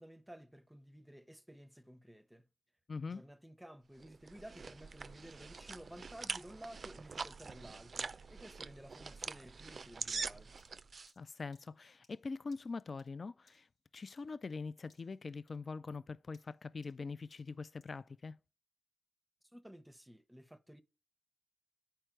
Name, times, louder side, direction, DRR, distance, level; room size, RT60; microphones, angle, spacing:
voice 1, 0.0-2.5 3.1-10.5 19.5-20.8, equal, 5° right, 0.7 m, -54 dB
voice 2, 2.9-3.2 11.2-13.7 13.9-18.4, left 4 dB, 55° left, 0.3 m, -43 dB
sound 1, 4.0-11.1, right 4 dB, 60° right, 0.4 m, -44 dB
sound 2, 10.6-14.6 14.9-15.2 15.5-18.0, left 3 dB, 90° left, 2.6 m, -72 dB
8.7 x 4.5 x 4.6 m
cardioid pair, 60°, 0 cm